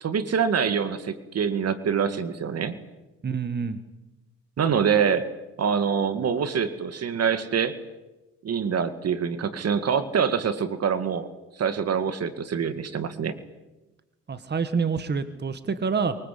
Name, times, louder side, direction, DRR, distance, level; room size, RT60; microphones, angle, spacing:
voice 1, 0.0-2.8 4.6-5.3 5.6-7.8 8.4-11.3 11.6-13.3, right 7 dB, 55° right, 12 dB, 2.1 m, -25 dB
voice 2, 3.2-3.8 14.3-16.2, right 5 dB, 35° right, 11 dB, 1.8 m, -27 dB
24.0 x 23.0 x 8.5 m, 1.1 s
cardioid pair, 90°, 30 cm